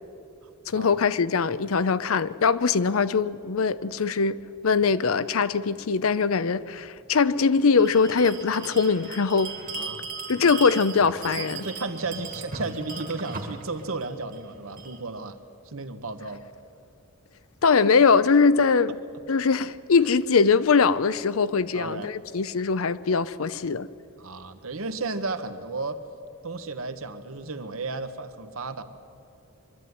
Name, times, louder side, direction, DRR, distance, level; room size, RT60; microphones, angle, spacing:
voice 1, 0.7-9.5 10.3-11.7 17.6-19.0 19.3-23.9, left 5 dB, 80° left, 0.6 m, -22 dB
Bell, 7.7-15.0, right 4 dB, 40° right, 1.7 m, -38 dB
voice 2, 9.7-10.1 11.4-15.4 15.6-16.5 21.7-22.1 24.2-26.0 26.4-28.8, right 3 dB, 75° right, 1.2 m, -33 dB
23.0 x 12.5 x 9.5 m
head